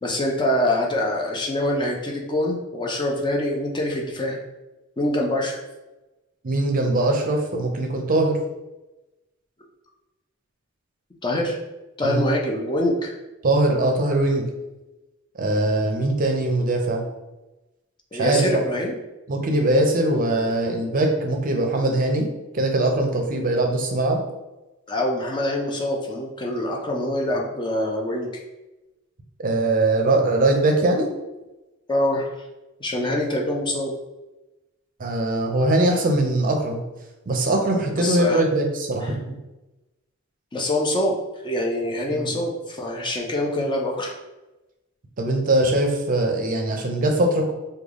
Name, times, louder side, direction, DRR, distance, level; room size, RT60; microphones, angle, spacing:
voice 1, 0.0-4.4 5.0-5.6 11.2-11.6 12.0-13.1 18.1-19.0 24.9-28.4 31.9-32.3 32.8-33.9 38.0-38.4 39.0-39.2 40.5-41.1 41.4-44.1, left 1 dB, 20° left, 0 dB, 0.5 m, -25 dB
voice 2, 6.4-8.4 12.0-12.2 13.4-14.5 15.4-17.0 18.1-18.6 19.3-22.3 22.5-24.2 29.4-31.1 35.0-36.8 37.3-39.4 42.1-42.4 45.2-47.5, right 2 dB, 40° right, 2 dB, 0.5 m, -21 dB
3.3 x 2.2 x 3.6 m, 1.0 s
head